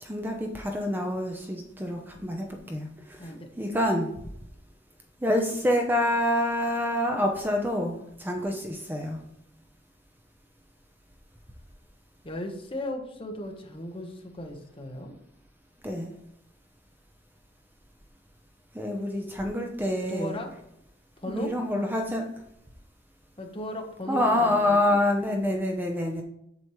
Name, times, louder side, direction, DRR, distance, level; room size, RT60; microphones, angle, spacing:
voice 1, 0.0-4.1 5.2-9.2 15.8-16.1 18.7-20.4 21.3-22.3 24.1-26.2, left 1 dB, 10° right, 2 dB, 0.8 m, -27 dB
voice 2, 12.2-15.1 20.1-20.5 21.2-21.5 23.4-25.0, left 1 dB, 30° left, 3 dB, 1.2 m, -36 dB
7.9 x 7.2 x 3.2 m, 0.76 s
head